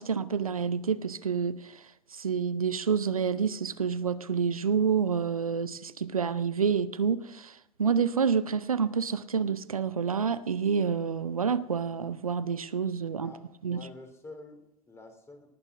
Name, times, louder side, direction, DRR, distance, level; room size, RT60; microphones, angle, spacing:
voice 1, 0.0-1.8 2.1-13.3 13.6-13.8, right 6 dB, 80° right, 0.6 m, -28 dB
voice 2, 13.2-15.5, left 2 dB, 15° left, 3.4 m, -48 dB
18.5 x 9.0 x 6.4 m
figure-of-eight pair, 80°, 18 cm